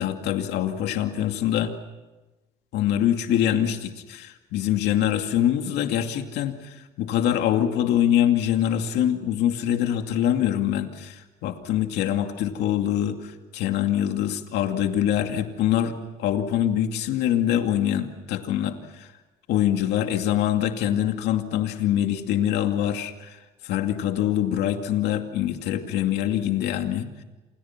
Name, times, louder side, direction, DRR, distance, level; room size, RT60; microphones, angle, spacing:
voice 1, 0.0-1.7 2.7-19.1 19.5-27.1, left 11 dB, 85° left, 5 dB, 2.5 m, -24 dB
29.5 x 28.5 x 6.0 m, 1.1 s
cardioid pair, 110°, 17 cm